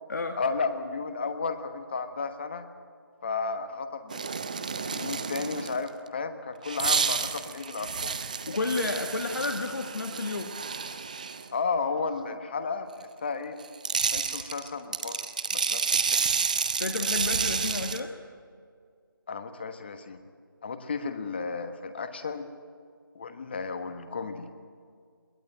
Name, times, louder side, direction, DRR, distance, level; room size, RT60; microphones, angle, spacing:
voice 1, 0.4-2.7 3.2-4.3 4.8-8.2 11.5-13.6 14.1-15.3 15.5-16.3 19.3-20.2 20.6-22.5 23.1-24.5, left 4 dB, 25° left, 9 dB, 1.2 m, -33 dB
sound 1, 4.1-5.9 6.6-11.5 13.6-18.0, right 5 dB, 20° right, 0.6 m, -30 dB
voice 2, 8.5-10.5 16.8-18.1, left 3 dB, 50° left, 4 dB, 1.5 m, -31 dB
22.0 x 17.5 x 9.0 m, 2.1 s
figure-of-eight pair, 165°, 12 cm